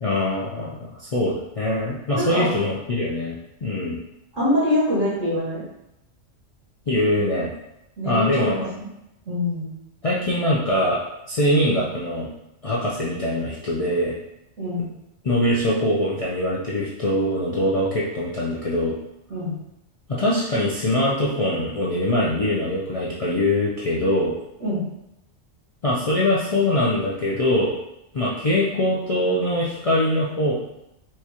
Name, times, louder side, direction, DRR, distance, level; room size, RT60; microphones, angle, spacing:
voice 1, 0.0-4.0 6.9-7.5 8.0-8.7 10.0-11.0 11.3-12.3 12.6-14.1 15.2-19.0 20.1-24.3 25.8-27.7 28.1-30.5, left 1 dB, 50° left, -6 dB, 0.4 m, -23 dB
voice 2, 2.1-2.5 4.3-5.6 8.0-8.5 8.8-8.9 9.3-9.8 14.6-14.9 19.3-19.5 24.6-24.8, left 1 dB, 75° right, -7 dB, 2.0 m, -24 dB
4.6 x 2.3 x 2.8 m, 0.86 s
omnidirectional pair, 1.3 m